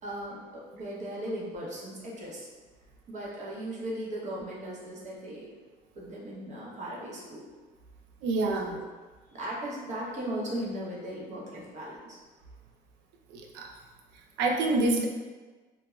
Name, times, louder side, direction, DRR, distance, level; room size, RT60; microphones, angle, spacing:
voice 1, 0.0-2.5 3.1-5.5 6.0-7.4 8.7-8.8 9.3-12.2, right 1 dB, 45° right, -4 dB, 0.8 m, -37 dB
voice 2, 8.2-8.8 13.3-13.7 14.4-15.1, right 2 dB, 90° right, 1 dB, 0.4 m, -27 dB
2.4 x 2.1 x 2.9 m, 1.3 s
cardioid pair, 110°, 17 cm